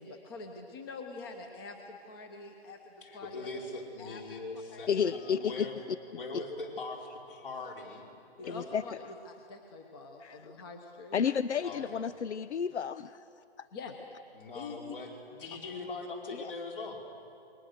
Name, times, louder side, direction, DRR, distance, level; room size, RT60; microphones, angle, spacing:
voice 1, 0.0-3.5 4.0-4.2 4.7-5.1 8.4-11.3 11.6-11.8 13.7-14.0 14.5-15.0, left 3 dB, 20° left, 4 dB, 1.1 m, -45 dB
voice 2, 3.0-5.7 6.1-8.1 8.4-8.8 11.6-12.1 14.3-15.1 15.4-17.0, left 3 dB, 55° left, 0 dB, 5.1 m, -41 dB
voice 3, 4.9-5.7 6.3-6.4 8.5-8.8 10.2-10.5 11.1-13.2 13.6-13.7 16.4-16.5, left 7 dB, 85° left, 14 dB, 0.7 m, -31 dB
28.0 x 22.0 x 6.6 m, 2.6 s
hypercardioid pair, 165°, 33 cm